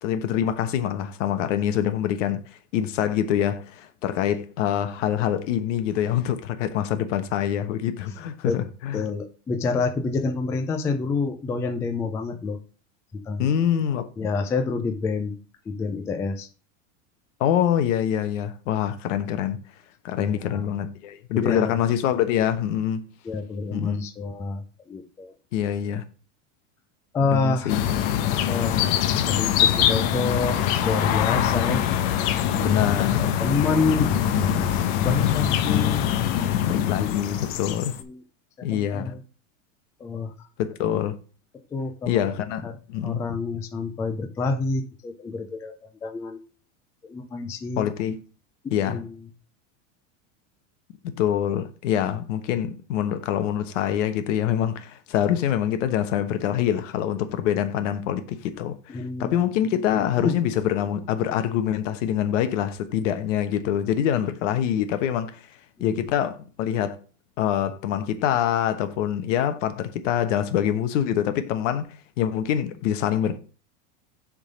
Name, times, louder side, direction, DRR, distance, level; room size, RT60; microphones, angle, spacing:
voice 1, 0.0-2.4 2.7-9.0 13.4-14.3 17.4-19.6 20.0-23.1 23.7-24.0 25.5-26.0 27.2-27.8 28.2-28.4 32.6-33.3 36.7-37.9 38.6-39.1 40.6-41.2 42.1-43.2 47.8-48.2 48.7-49.0 51.0-65.4 65.8-67.0 67.4-73.4, left 10 dB, 75° left, 1.2 m, -25 dB
voice 2, 8.9-12.6 13.1-13.5 14.2-15.4 15.7-16.5 20.2-20.6 21.3-21.7 23.2-25.3 27.1-27.8 28.5-28.8 29.3-31.8 32.4-36.1 37.0-37.1 37.5-37.6 38.0-38.2 38.7-39.2 40.0-40.3 41.7-42.3 42.6-42.8 43.0-46.4 47.0-47.9 48.9-49.2 58.9-59.4 60.2-60.4 65.8-66.0, left 4 dB, 10° left, 0.3 m, -28 dB
sound 1, 27.7-38.0, left 10 dB, 55° left, 1.0 m, -23 dB
7.1 x 3.9 x 5.1 m
supercardioid pair, 150°, 38 cm